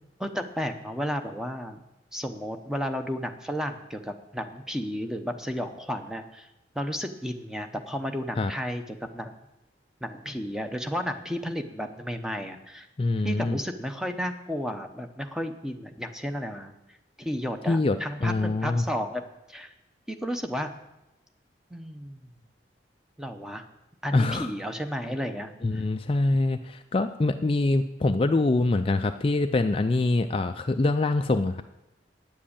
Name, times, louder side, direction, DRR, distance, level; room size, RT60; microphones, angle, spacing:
voice 1, 0.2-1.8 2.1-6.5 6.7-9.4 10.0-12.9 13.2-16.7 17.2-19.7 20.1-20.7 21.7-22.3 23.2-23.7 24.0-25.8, equal, 5° right, 7 dB, 0.8 m, -33 dB
voice 2, 13.0-13.6 17.7-18.8 24.1-24.5 25.6-31.6, left 2 dB, 30° left, 7 dB, 0.4 m, -24 dB
9.5 x 7.6 x 8.6 m, 0.96 s
head